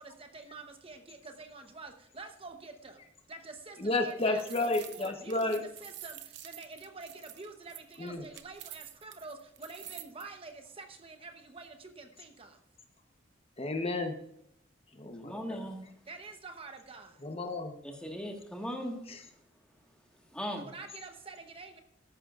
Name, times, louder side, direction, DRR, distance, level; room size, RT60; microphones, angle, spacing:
voice 1, 0.0-3.0 3.3-12.6 16.1-17.2 20.6-21.8, right 3 dB, 30° right, 5 dB, 1.0 m, -47 dB
voice 2, 3.8-5.6 8.0-8.3 13.6-14.1 14.9-15.6 17.2-17.7 19.1-19.2, left 2 dB, 30° left, 5 dB, 0.9 m, -32 dB
sound 1, 3.9-10.2, right 12 dB, 65° right, 0.8 m, -48 dB
voice 3, 15.2-15.8 17.8-19.0 20.3-20.7, equal, 5° left, 2 dB, 1.6 m, -38 dB
13.5 x 11.0 x 2.5 m, 0.73 s
head